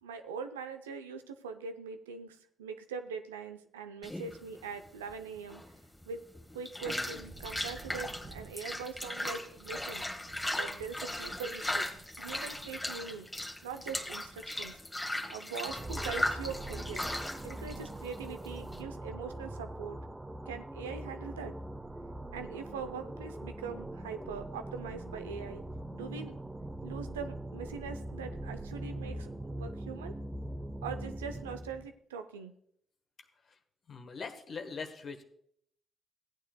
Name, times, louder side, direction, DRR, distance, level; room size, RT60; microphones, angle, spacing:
voice 1, 0.0-5.6 6.1-6.2 6.5-10.1 10.5-11.9 12.2-13.3 13.6-14.8 15.3-17.1 17.4-20.0 20.5-21.5 22.3-25.6 25.9-26.3 26.8-30.1 30.8-32.5, right 6 dB, 90° right, 8 dB, 0.5 m, -42 dB
sound 1, 4.0-18.8, left 1 dB, 15° left, 1.6 m, -38 dB
sound 2, 6.8-14.9, right 3 dB, 35° right, 1.4 m, -54 dB
sound 3, 15.7-31.9, right 1 dB, 20° right, 1.0 m, -42 dB
voice 2, 33.9-35.2, left 5 dB, 55° left, 6 dB, 1.3 m, -41 dB
16.0 x 9.2 x 2.3 m, 0.70 s
hypercardioid pair, 45°, 0 cm